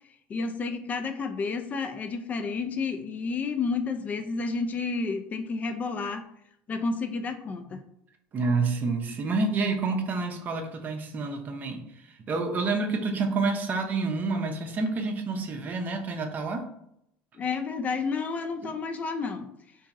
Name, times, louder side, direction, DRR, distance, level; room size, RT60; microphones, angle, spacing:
voice 1, 0.3-6.3 6.7-7.8 17.3-19.5, left 4 dB, 35° left, 7 dB, 0.3 m, -30 dB
voice 2, 8.3-16.7 18.6-18.7, right 3 dB, 40° right, 5 dB, 0.5 m, -28 dB
2.9 x 2.6 x 2.4 m, 0.76 s
supercardioid pair, 95°, 5 cm